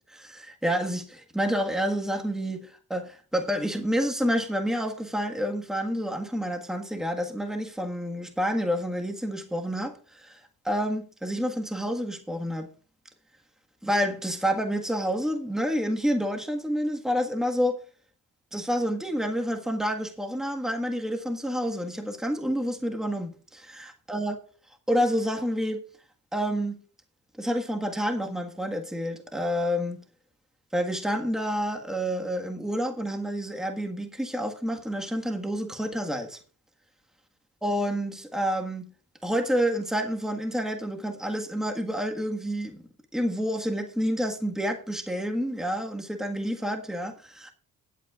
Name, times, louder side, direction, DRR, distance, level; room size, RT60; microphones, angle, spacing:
voice 1, 0.1-12.7 13.8-17.8 18.5-24.4 24.9-25.8 26.3-26.8 27.4-30.0 30.7-36.4 37.6-38.9 39.2-42.8 43.1-47.5, equal, ahead, 1.5 m, -29 dB
19.0 x 8.3 x 2.4 m
cardioid pair, 65°, 39 cm